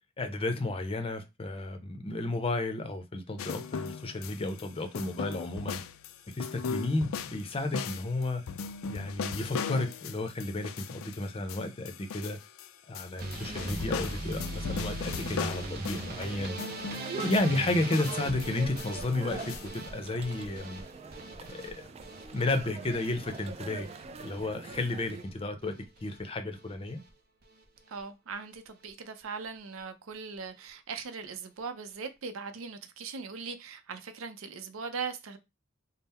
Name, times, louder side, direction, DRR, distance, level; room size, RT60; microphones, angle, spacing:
voice 1, 0.2-5.8 6.3-8.5 8.9-12.4 12.9-16.6 17.2-20.8 21.5-21.9 22.3-23.9 24.2-25.7 26.0-27.0, left 2 dB, 30° left, 0.6 m, -32 dB
sound 1, 3.4-4.7 4.9-12.7 12.9-16.2 16.6-19.7, left 6 dB, 85° left, 0.4 m, -38 dB
sound 2, 13.2-25.3 25.6-26.2 26.5-27.1 27.4-27.6 28.0-28.1 28.3-28.4, right 2 dB, 50° right, 0.7 m, -40 dB
sound 3, 15.9-25.2, right 4 dB, 30° right, 0.3 m, -45 dB
voice 2, 27.9-35.4, right 5 dB, 85° right, 0.5 m, -40 dB
3.6 x 2.0 x 4.1 m
head